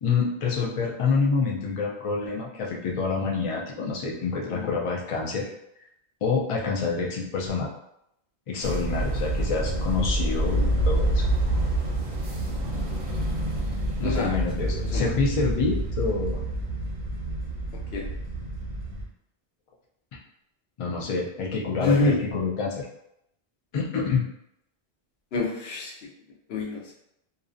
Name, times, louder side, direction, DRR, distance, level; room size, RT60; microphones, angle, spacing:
voice 1, 0.0-5.5 6.2-7.7 8.5-11.3 14.0-16.4 20.8-22.9 23.7-24.2, left 4 dB, 50° left, -2 dB, 0.4 m, -27 dB
voice 2, 4.4-4.8 14.0-14.3 14.9-15.0 17.9-18.1 21.8-22.2 25.3-25.9 26.5-26.9, left 3 dB, 70° left, -2 dB, 0.8 m, -26 dB
sound 1, 8.6-19.0, right 1 dB, 50° right, 0.6 m, -27 dB
2.5 x 2.0 x 2.5 m, 0.78 s
omnidirectional pair, 1.1 m